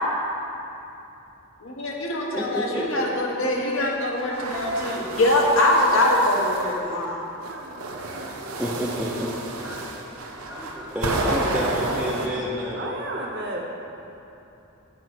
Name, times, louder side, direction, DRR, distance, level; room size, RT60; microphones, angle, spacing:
voice 1, 1.6-7.2, left 1 dB, 70° left, -1 dB, 1.2 m, -23 dB
voice 2, 2.3-2.9 8.6-9.3 9.6-12.9, equal, 5° right, -7 dB, 0.6 m, -30 dB
sound 1, 4.2-6.8 7.4-12.3, right 2 dB, 90° right, 0.8 m, -31 dB
voice 3, 7.4-8.8 12.7-13.7, right 1 dB, 50° right, 0 dB, 1.0 m, -35 dB
7.8 x 5.0 x 6.1 m, 2.9 s
head